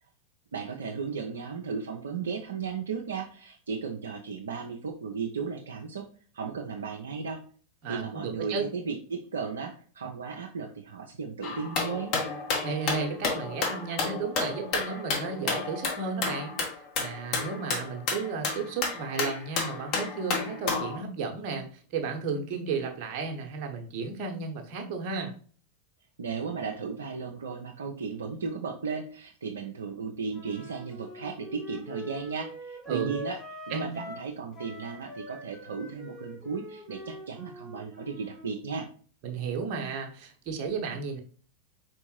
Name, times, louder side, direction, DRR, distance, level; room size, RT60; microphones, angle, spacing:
voice 1, 0.5-6.0 6.3-7.4 7.9-12.1 26.2-33.4 33.7-38.9, right 5 dB, 65° right, 1 dB, 0.5 m, -35 dB
voice 2, 7.8-8.7 12.6-16.6 17.0-25.3 32.9-33.2 33.7-34.0 39.2-41.2, right 5 dB, 40° right, 2 dB, 0.9 m, -33 dB
sound 1, 11.4-21.0, left 4 dB, 40° left, 1.1 m, -31 dB
Wind instrument woodwind instrument, 30.3-34.3 34.5-38.5, equal, 10° left, 1.0 m, -44 dB
4.5 x 3.5 x 3.0 m, 0.42 s
figure-of-eight pair, 90°, 0 cm